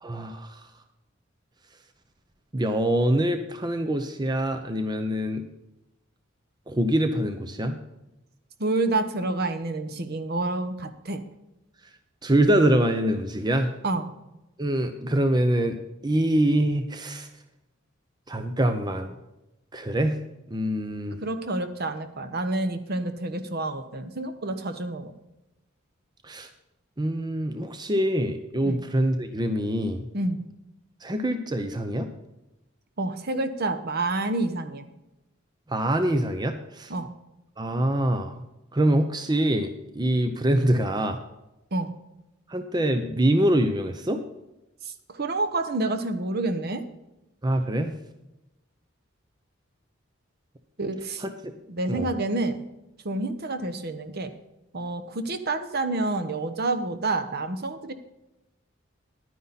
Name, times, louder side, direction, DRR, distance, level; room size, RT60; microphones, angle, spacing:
voice 1, 0.0-0.6 2.5-5.4 6.7-7.8 12.2-13.7 14.6-15.8 16.0-17.3 18.3-19.1 19.7-20.2 20.5-21.2 26.2-26.5 27.0-30.0 31.0-32.1 35.7-36.9 37.6-38.4 38.7-41.2 42.5-44.2 47.4-47.9 51.9-52.1, right 1 dB, 20° right, 7 dB, 0.7 m, -24 dB
voice 2, 8.6-11.2 13.8-14.1 21.2-25.1 28.6-28.8 30.1-30.4 33.0-34.8 36.9-37.1 41.7-41.9 44.8-46.8 50.8-51.2 51.7-52.6 53.0-54.3 54.7-57.9, right 2 dB, 50° right, 8 dB, 1.0 m, -28 dB
11.0 x 9.6 x 4.1 m, 0.94 s
head